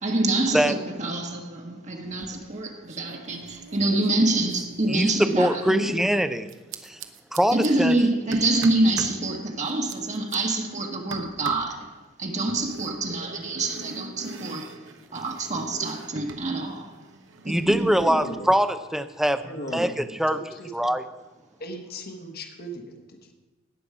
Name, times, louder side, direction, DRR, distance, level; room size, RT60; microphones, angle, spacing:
voice 1, 0.0-6.0 7.5-11.9 12.2-14.8 15.1-17.0 17.4-17.9, right 2 dB, 35° right, 1.3 m, -26 dB
sound 1, 2.1-2.6 2.9-5.5 6.5-7.7 8.3-9.2 9.6-10.4 11.1-11.7 12.5-16.5 16.7-18.0, right 3 dB, 70° right, 0.9 m, -41 dB
voice 2, 5.4-6.5 6.8-7.0 7.3-8.0 17.4-20.4 20.7-21.0, equal, ahead, 0.5 m, -23 dB
voice 3, 18.0-18.5 19.4-19.9 20.5-20.7 21.6-23.3, equal, 50° left, 1.4 m, -36 dB
18.5 x 7.1 x 4.9 m
head